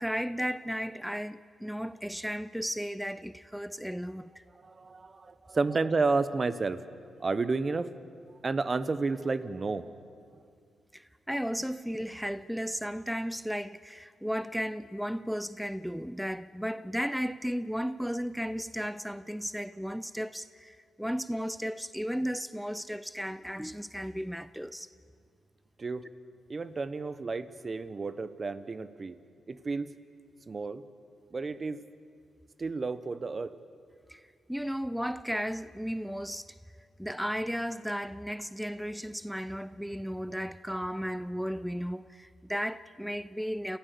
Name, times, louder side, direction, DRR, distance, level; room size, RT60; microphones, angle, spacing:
voice 1, 0.0-4.3 10.9-24.9 34.1-34.2 34.5-36.5 37.0-43.8, equal, ahead, 0.5 m, -34 dB
voice 2, 4.6-6.8 7.2-7.9 8.4-9.9 25.8-26.1 26.5-29.2 29.5-29.9 30.5-30.8 31.3-31.8 32.6-33.6, right 3 dB, 45° right, 1.1 m, -31 dB
28.0 x 15.0 x 7.0 m
supercardioid pair, 45°, 0 cm